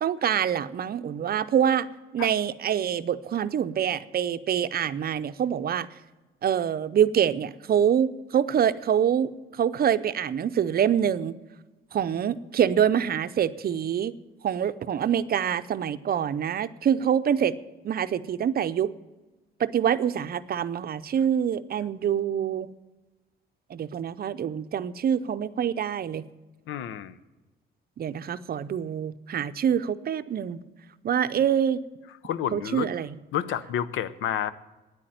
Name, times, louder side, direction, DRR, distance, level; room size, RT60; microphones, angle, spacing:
voice 1, 0.0-5.9 6.4-11.4 11.9-14.1 14.4-17.5 17.8-18.9 19.6-22.7 23.7-26.2 28.0-30.6 31.0-31.8 32.5-33.2, right 9 dB, 50° right, 13 dB, 0.6 m, -25 dB
voice 2, 26.7-27.2 32.2-32.9 33.3-34.5, left 10 dB, 85° left, 15 dB, 0.6 m, -29 dB
9.8 x 8.6 x 9.0 m, 1.1 s
cardioid pair, 90°, 20 cm